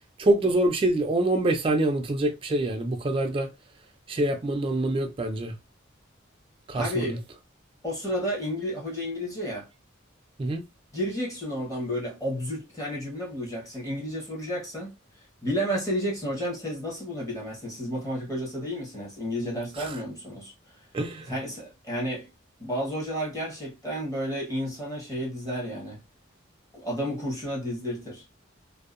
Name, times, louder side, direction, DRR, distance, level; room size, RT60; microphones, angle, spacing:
voice 1, 0.2-3.5 4.1-5.5 6.7-7.2 10.4-10.6 19.8-20.0 20.9-21.3, right 1 dB, 25° right, 0.3 m, -25 dB
voice 2, 6.7-7.2 7.8-9.7 10.9-15.0 15.4-20.5 21.3-22.3 22.6-26.0 26.7-28.2, equal, 15° left, 0.9 m, -31 dB
2.6 x 2.0 x 2.4 m
head